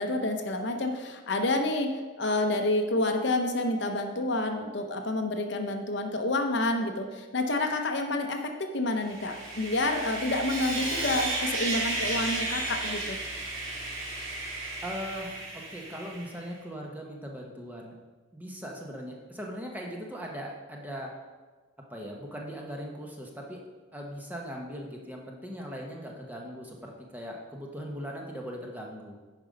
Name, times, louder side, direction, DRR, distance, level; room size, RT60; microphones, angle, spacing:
voice 1, 0.0-13.2, left 2 dB, 60° left, 4 dB, 0.8 m, -29 dB
Sawing, 9.0-16.4, right 2 dB, 80° right, 2.6 m, -33 dB
voice 2, 14.8-18.0 18.3-21.1 21.9-23.6 23.9-29.2, equal, 10° right, -1 dB, 1.0 m, -39 dB
9.7 x 5.4 x 5.2 m, 1.3 s
head